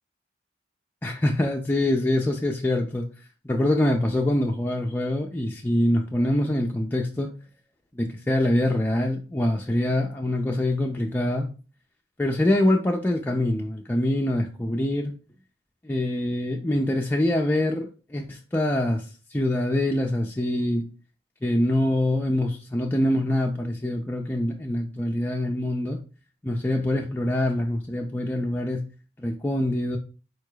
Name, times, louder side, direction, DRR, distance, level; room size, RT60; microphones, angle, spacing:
voice 1, 1.0-7.3 7.9-11.5 12.2-15.1 15.8-20.9 21.4-26.0 26.4-28.8 29.2-30.0, left 1 dB, 10° left, 1 dB, 0.3 m, -24 dB
4.7 x 4.6 x 2.3 m, 0.34 s
head